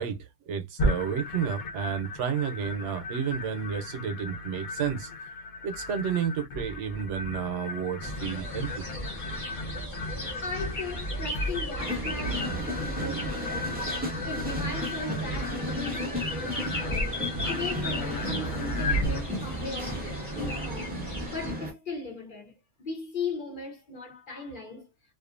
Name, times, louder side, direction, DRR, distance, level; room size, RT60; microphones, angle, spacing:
voice 1, 0.0-5.1 5.6-8.9, right 7 dB, 70° right, 0.9 m, -31 dB
sound 1, 0.8-19.2, left 1 dB, 65° left, 0.5 m, -35 dB
sound 2, 8.0-21.5, equal, 15° left, 1.0 m, -37 dB
voice 2, 10.1-14.0 14.2-22.5 22.8-24.9, left 3 dB, 45° left, 0.9 m, -38 dB
sound 3, 11.8-21.7, equal, 10° right, 0.5 m, -34 dB
2.5 x 2.4 x 2.4 m
omnidirectional pair, 1.3 m